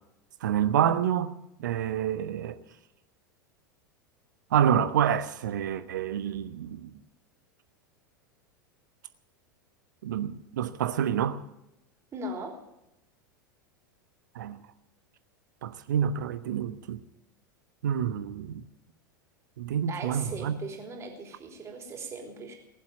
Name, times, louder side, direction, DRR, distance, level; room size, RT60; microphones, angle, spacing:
voice 1, 0.4-1.3 1.6-2.6 4.5-6.9 10.0-11.4 14.3-14.6 15.6-17.0 17.8-18.6 19.6-20.6, right 9 dB, 65° right, 1.1 m, -28 dB
voice 2, 12.1-12.6 19.9-22.6, right 2 dB, 25° right, 3.4 m, -38 dB
19.5 x 7.5 x 9.1 m
figure-of-eight pair, 85°, 11 cm